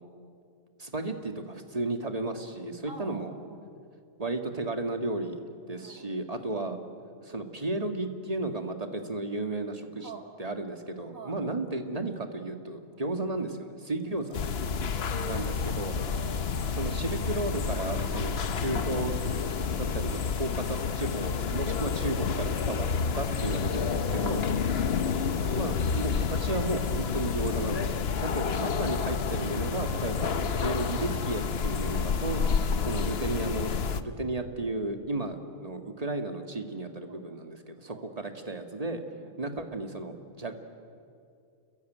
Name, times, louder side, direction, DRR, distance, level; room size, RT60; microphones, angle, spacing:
voice 1, 0.8-3.3 4.2-5.4 5.7-6.8 7.2-10.1 10.4-14.3 15.3-15.9 16.7-19.2 19.7-22.9 23.1-24.4 25.6-30.3 30.6-32.4 32.8-33.7 34.0-39.0 39.4-40.5, right 2 dB, 25° right, 5 dB, 2.0 m, -33 dB
voice 2, 2.8-3.7 5.8-6.8 10.0-10.3 11.1-11.4 12.9-13.2 15.1-16.6 21.6-21.8 24.2-24.6 28.3-28.7 32.6-32.8 37.0-37.4 37.9-38.1 39.2-39.4, right 2 dB, 70° right, 3 dB, 3.4 m, -47 dB
Trickle dribble / Fill (with liquid), 14.0-21.5, equal, 45° right, 6.2 m, -58 dB
sound 1, 14.3-34.0, left 6 dB, 50° left, 1.1 m, -29 dB
29.0 x 22.0 x 9.3 m, 2.4 s
omnidirectional pair, 1.4 m